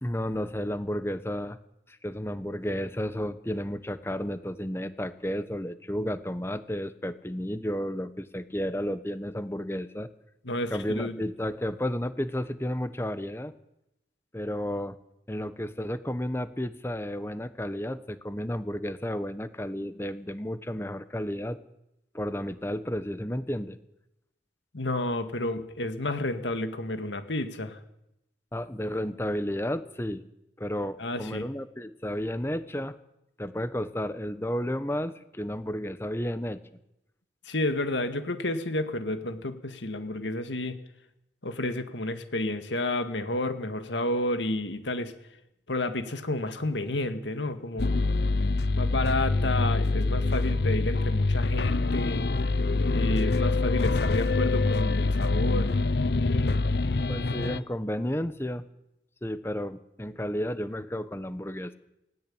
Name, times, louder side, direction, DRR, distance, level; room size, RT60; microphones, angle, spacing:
voice 1, 0.0-1.6 1.9-10.1 10.7-13.5 14.3-14.9 15.3-21.6 22.1-23.8 28.5-30.2 30.6-32.9 33.4-36.6 57.1-58.6 59.2-61.8, equal, 15° left, 13 dB, 1.0 m, -32 dB
voice 2, 10.4-11.2 24.7-27.8 31.0-31.5 37.4-40.8 41.4-45.1 45.7-47.9 48.7-52.3 52.9-55.7, left 2 dB, 90° left, 9 dB, 2.1 m, -31 dB
sound 1, 47.8-57.6, left 3 dB, 65° left, 0.7 m, -25 dB
19.0 x 17.0 x 8.9 m, 0.85 s
head